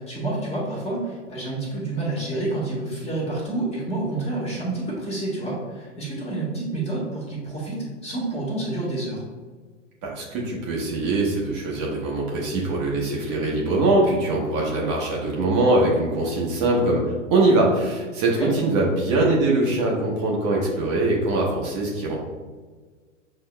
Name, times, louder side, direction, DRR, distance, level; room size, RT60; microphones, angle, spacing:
voice 1, 0.0-9.2 18.3-18.5, right 2 dB, 15° left, -5 dB, 1.5 m, -28 dB
voice 2, 10.0-22.2, right 2 dB, 40° right, -3 dB, 1.0 m, -22 dB
6.6 x 2.8 x 2.2 m, 1.4 s
hypercardioid pair, 105°, 38 cm